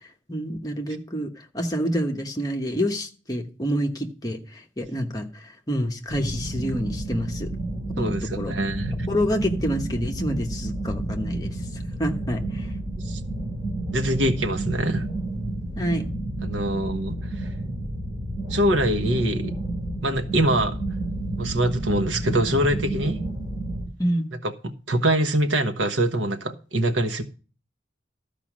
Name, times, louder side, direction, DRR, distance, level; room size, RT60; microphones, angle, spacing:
voice 1, 0.3-7.5 8.0-8.5 9.1-11.6 12.0-12.7 15.8-16.0 24.0-24.3, equal, 20° left, 1.1 m, -28 dB
sound 1, 6.1-23.9, right 1 dB, 25° right, 3.3 m, -30 dB
voice 2, 8.0-9.0 13.0-13.2 13.9-15.1 16.4-17.5 18.5-19.5 20.0-20.8 21.4-23.2 24.4-27.2, right 1 dB, 85° right, 1.2 m, -24 dB
13.0 x 5.1 x 6.1 m
head